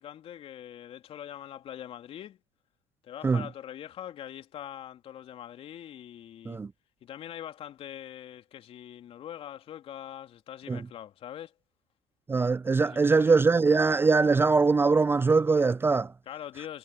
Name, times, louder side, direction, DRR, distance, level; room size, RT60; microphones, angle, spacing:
voice 1, 0.0-2.4 3.0-6.6 7.0-11.5 12.8-13.4 16.2-16.8, left 10 dB, 50° left, 3.0 m, -43 dB
voice 2, 12.3-16.1, right 4 dB, 20° right, 0.5 m, -22 dB
hypercardioid pair, 75°, 13 cm